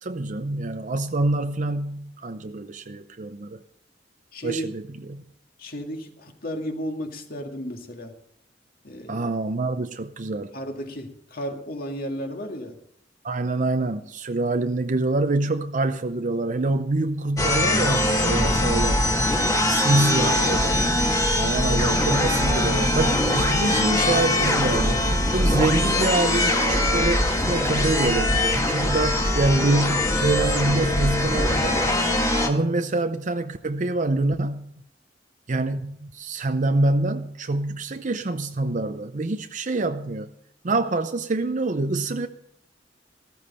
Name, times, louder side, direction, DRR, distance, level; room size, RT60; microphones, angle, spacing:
voice 1, 0.0-3.6 4.4-4.8 5.1-5.2 9.1-10.5 13.2-19.2 19.7-20.8 21.4-31.8 32.5-34.7 35.5-40.3 40.6-42.3, right 2 dB, 45° right, 8 dB, 0.6 m, -26 dB
voice 2, 4.3-4.7 5.6-8.1 8.8-9.3 10.5-12.8, equal, 55° left, 3 dB, 2.1 m, -34 dB
sound 1, 17.4-32.5, left 1 dB, 20° left, 1.6 m, -22 dB
14.5 x 14.0 x 4.3 m, 0.72 s
head